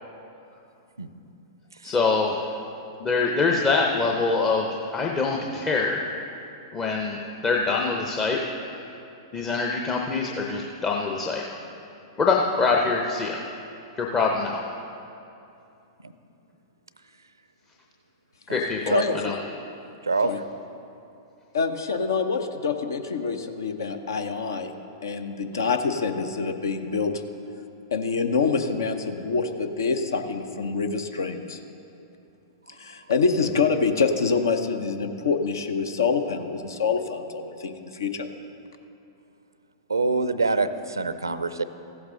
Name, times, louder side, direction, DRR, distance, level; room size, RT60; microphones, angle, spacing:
voice 1, 1.8-2.4 3.0-6.1 6.7-9.0 9.3-11.4 12.2-13.4 14.0-14.6 18.5-19.4, left 4 dB, 20° left, 0 dB, 0.7 m, -24 dB
voice 2, 18.9-19.3 20.2-20.4 21.5-24.7 25.0-27.2 27.9-31.6 32.8-38.3, left 5 dB, 65° left, 7 dB, 0.7 m, -26 dB
voice 3, 39.9-41.6, right 3 dB, 80° right, 12 dB, 0.5 m, -24 dB
15.0 x 8.0 x 3.8 m, 2.7 s
figure-of-eight pair, 100°, 2 cm